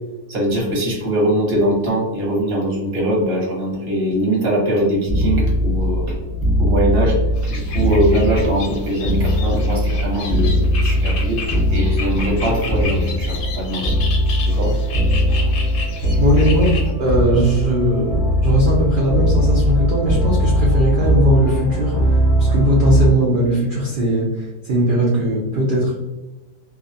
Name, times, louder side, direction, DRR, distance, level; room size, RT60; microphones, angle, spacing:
voice 1, 0.3-6.2 6.6-11.4 11.7-14.0 14.5-14.7, right 1 dB, 45° right, -4 dB, 1.0 m, -21 dB
sound 1, 5.1-23.1, equal, 25° left, 0.7 m, -19 dB
sound 2, 7.4-16.9, left 4 dB, 65° left, 0.9 m, -33 dB
voice 2, 16.2-25.9, equal, 75° right, -4 dB, 0.4 m, -19 dB
2.5 x 2.3 x 2.6 m, 1.0 s
omnidirectional pair, 1.6 m